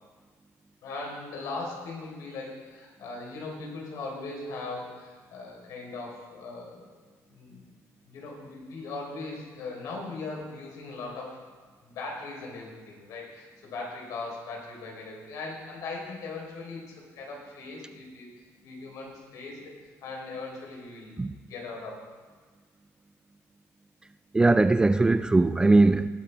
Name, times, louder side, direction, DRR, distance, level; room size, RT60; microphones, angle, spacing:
voice 1, 0.8-6.8 7.3-7.6 8.1-11.4 11.8-18.3 18.6-19.7 20.0-21.2 21.5-22.1, left 3 dB, 75° left, 3.8 m, -39 dB
voice 2, 24.3-26.1, right 2 dB, 15° right, 0.3 m, -20 dB
18.5 x 8.7 x 3.4 m
cardioid pair, 115°, 6 cm